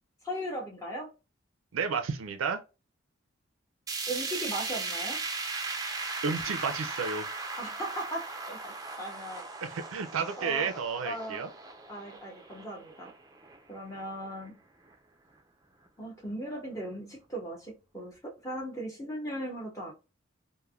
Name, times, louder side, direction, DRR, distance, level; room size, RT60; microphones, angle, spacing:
voice 1, 0.2-1.1 4.1-5.2 7.6-8.7 9.0-9.5 10.4-11.5 11.9-13.1 13.7-14.5 16.0-19.9, right 1 dB, 15° left, 0.7 m, -38 dB
voice 2, 1.7-2.6 6.2-7.3 9.6-11.5, right 5 dB, 85° right, 0.4 m, -31 dB
sound 1, 3.9-14.0 14.4-14.5 14.9-15.0 15.9-16.0, right 3 dB, 20° right, 0.4 m, -38 dB
3.2 x 2.1 x 2.2 m
head